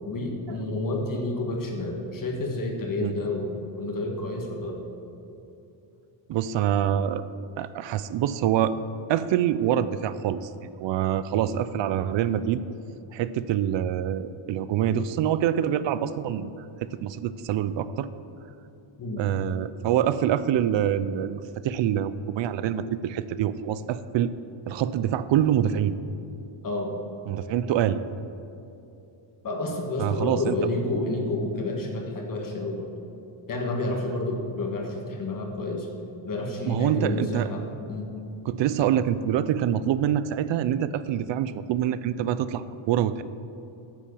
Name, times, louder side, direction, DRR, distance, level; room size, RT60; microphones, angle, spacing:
voice 1, 0.0-4.8 19.0-19.2 26.6-27.1 29.4-32.9 33.5-35.9 36.2-37.6 37.9-38.1, left 2 dB, 40° left, 1 dB, 1.5 m, -30 dB
voice 2, 6.3-7.2 7.6-8.8 9.1-10.5 10.8-12.6 13.1-16.5 17.0-18.1 19.2-24.3 24.7-25.9 27.3-28.0 30.0-30.6 36.7-37.5 38.5-43.2, right 10 dB, 65° right, 14 dB, 0.5 m, -25 dB
9.1 x 7.4 x 7.0 m, 2.8 s
cardioid pair, 145°, 49 cm